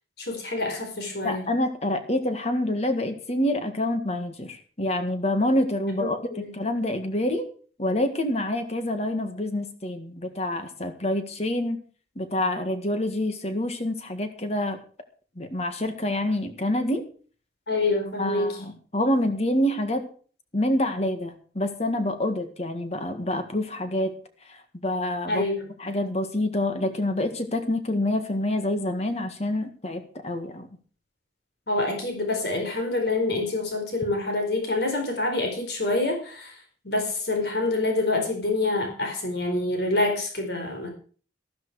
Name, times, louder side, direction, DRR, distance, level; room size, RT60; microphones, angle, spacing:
voice 1, 0.2-1.5 6.0-6.5 17.7-18.5 25.3-25.5 31.7-36.5 36.8-40.9, left 2 dB, 60° left, 2 dB, 4.7 m, -26 dB
voice 2, 1.2-7.5 7.8-11.8 12.2-14.8 15.4-17.1 18.2-20.1 20.5-24.2 24.5-25.5 25.8-30.7, left 1 dB, 35° left, 8 dB, 1.7 m, -27 dB
13.5 x 13.0 x 4.8 m, 0.41 s
head